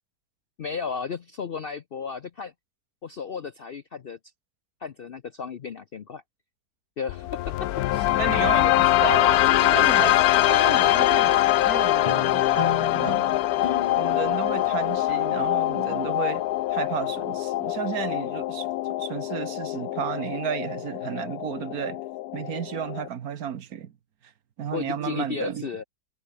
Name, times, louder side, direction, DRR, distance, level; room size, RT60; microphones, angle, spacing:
voice 1, 0.6-2.5 3.0-4.2 4.8-6.2 7.0-8.1 24.7-25.8, left 6 dB, 55° left, 0.6 m, -34 dB
sound 1, 7.1-23.1, left 15 dB, 75° left, 1.0 m, -23 dB
voice 2, 8.2-10.2 10.5-13.4 14.0-22.0 22.3-23.9 24.6-25.9, right 9 dB, 65° right, 1.5 m, -33 dB
sound 2, 12.1-16.7, left 4 dB, 25° left, 1.0 m, -38 dB
omnidirectional pair, 1.7 m